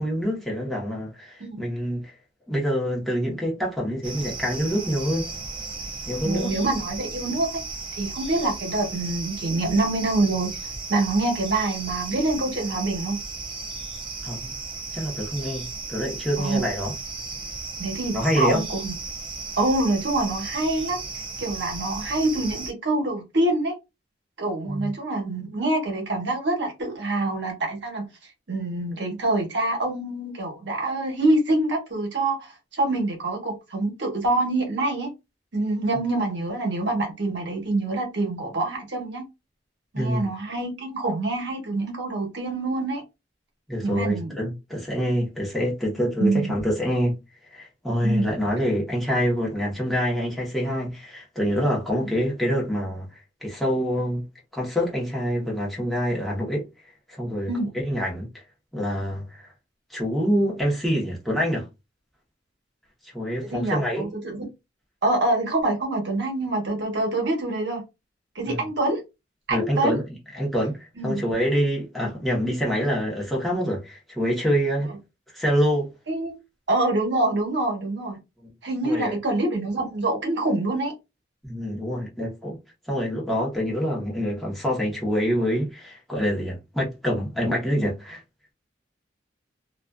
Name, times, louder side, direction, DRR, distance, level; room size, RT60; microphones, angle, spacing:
voice 1, 0.0-2.1 2.5-5.3 6.1-6.5 14.2-14.5 14.9-16.9 18.1-18.6 24.7-24.9 39.9-40.3 43.7-47.2 47.5-54.2 54.5-56.6 57.1-57.5 57.8-58.3 58.7-59.5 59.9-61.7 63.0-64.1 68.5-68.6 69.5-70.0 70.3-70.8 71.0-74.9 75.3-75.9 78.8-79.1 81.4-82.6 82.9-88.2, equal, ahead, 0.8 m, -26 dB
sound 1, 4.0-22.7, right 3 dB, 25° right, 0.4 m, -35 dB
voice 2, 6.2-7.6 7.9-10.6 10.9-13.2 16.4-16.6 17.8-18.9 19.6-23.7 24.4-28.1 28.5-35.1 35.5-39.2 39.9-43.0 43.8-44.3 46.2-46.5 48.0-48.3 57.5-57.7 63.4-64.4 65.0-67.8 68.3-69.0 69.5-70.0 71.0-71.2 76.1-76.4 76.7-78.2 78.6-80.9, right 2 dB, 70° right, 1.0 m, -25 dB
2.4 x 2.3 x 2.2 m
head